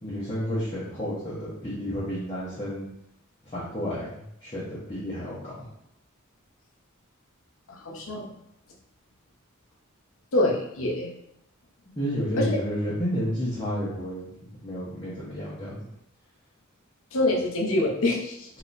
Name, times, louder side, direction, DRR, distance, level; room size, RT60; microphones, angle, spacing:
voice 1, 0.0-2.9 3.4-5.7 11.8-15.9 18.5-18.6, equal, 25° left, -10 dB, 1.0 m, -31 dB
voice 2, 7.7-8.4 10.3-11.1 12.4-12.6 17.1-18.5, left 1 dB, 65° left, -1 dB, 0.7 m, -25 dB
3.6 x 2.9 x 2.6 m, 0.76 s
head